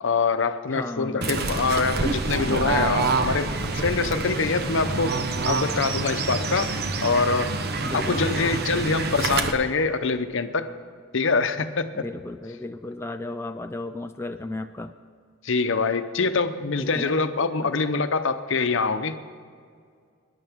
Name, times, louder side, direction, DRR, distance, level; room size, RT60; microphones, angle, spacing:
voice 1, 0.0-5.2 5.4-6.7 7.0-7.5 7.9-10.7 11.1-12.0 15.4-19.2, left 4 dB, 65° left, 9 dB, 0.8 m, -24 dB
voice 2, 0.7-1.6 7.8-8.6 11.9-14.9 16.8-17.2 17.6-17.7, left 2 dB, 10° left, 6 dB, 0.3 m, -35 dB
Fowl / Bird, 1.2-9.5, right 3 dB, 50° right, 0.9 m, -27 dB
23.5 x 11.0 x 3.6 m, 2.1 s
head